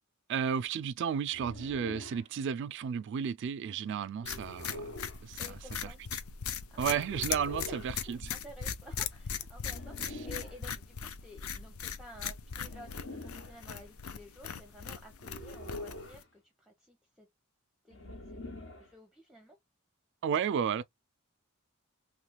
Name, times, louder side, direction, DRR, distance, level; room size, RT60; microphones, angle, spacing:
voice 1, 0.3-4.9 5.2-5.5 5.8-6.2 6.8-8.2 10.0-10.3 20.2-20.8, right 7 dB, 55° right, 0.3 m, -33 dB
sound 1, 1.3-2.3 4.2-5.2 7.0-8.0 9.6-10.6 12.6-13.6 15.2-16.3 17.9-18.9, left 1 dB, 65° left, 1.2 m, -45 dB
sound 2, 4.3-16.2, left 7 dB, 90° left, 0.6 m, -39 dB
voice 2, 5.4-6.0 6.7-7.0 7.7-17.3 17.8-18.4 18.8-19.6, left 1 dB, 5° right, 0.7 m, -52 dB
3.2 x 3.1 x 2.2 m
head